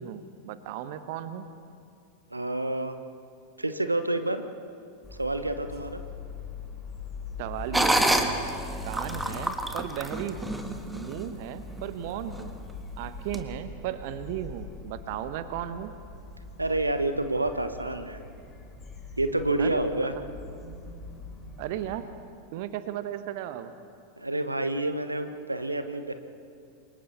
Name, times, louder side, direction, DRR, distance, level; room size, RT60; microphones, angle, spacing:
voice 1, 0.0-1.5 7.4-8.3 8.8-10.6 10.9-12.5 13.0-15.9 19.6-19.8 21.6-22.1 22.5-23.7, right 11 dB, 50° right, 11 dB, 1.0 m, -35 dB
voice 2, 2.3-3.0 3.6-4.4 5.2-6.0 16.6-18.2 19.2-20.1 24.2-26.1, right 2 dB, 85° right, 9 dB, 1.1 m, -28 dB
sound 1, 5.0-22.0, left 3 dB, 25° left, 6.5 m, -42 dB
sound 2, 7.7-11.2 11.7-11.8 12.3-12.7 13.3-13.4, right 1 dB, 5° right, 1.6 m, -27 dB
28.5 x 24.0 x 4.2 m, 2.4 s
figure-of-eight pair, 90°, 0 cm